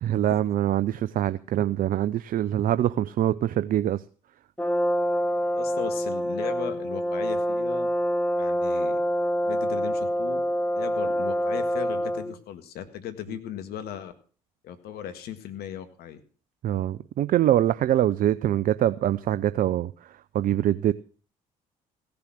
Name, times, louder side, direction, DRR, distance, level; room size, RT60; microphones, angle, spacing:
voice 1, 0.0-4.0 16.6-20.9, right 12 dB, 55° right, 14 dB, 0.6 m, -24 dB
Brass instrument, 4.6-12.4, equal, 10° left, 1.0 m, -26 dB
voice 2, 5.5-7.9 8.4-9.0 9.4-10.4 10.8-14.1 14.6-16.2, left 10 dB, 65° left, 9 dB, 1.9 m, -37 dB
16.5 x 7.0 x 7.7 m, 0.40 s
hypercardioid pair, 55°, 17 cm